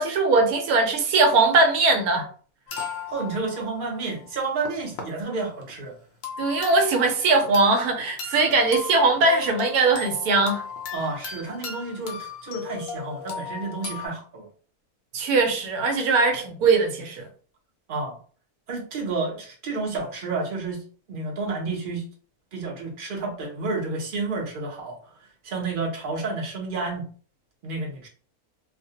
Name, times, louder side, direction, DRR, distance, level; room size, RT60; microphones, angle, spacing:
voice 1, 0.0-2.3 6.4-10.6 15.1-17.3, right 3 dB, 80° right, 1.1 m, -20 dB
sound 1, 2.7-5.0 5.5-5.7 6.2-7.9 8.2-14.1, left 6 dB, 70° left, 0.6 m, -37 dB
voice 2, 3.1-5.9 10.9-14.5 17.9-18.2 18.7-20.8 21.1-22.0 22.5-25.0 25.4-27.1 27.6-28.1, right 3 dB, 55° right, 0.6 m, -30 dB
2.4 x 2.1 x 2.7 m
omnidirectional pair, 1.6 m